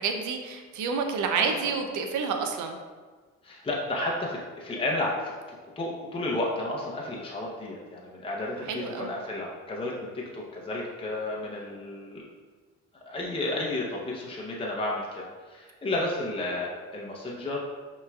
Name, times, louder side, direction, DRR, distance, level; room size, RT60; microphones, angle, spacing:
voice 1, 0.0-2.8 8.7-9.2, right 5 dB, 80° right, 5 dB, 0.6 m, -29 dB
voice 2, 3.4-5.3 5.8-12.2 13.1-17.6, left 2 dB, 20° left, -3 dB, 0.7 m, -32 dB
5.5 x 3.1 x 2.3 m, 1.4 s
cardioid pair, 90°, 30 cm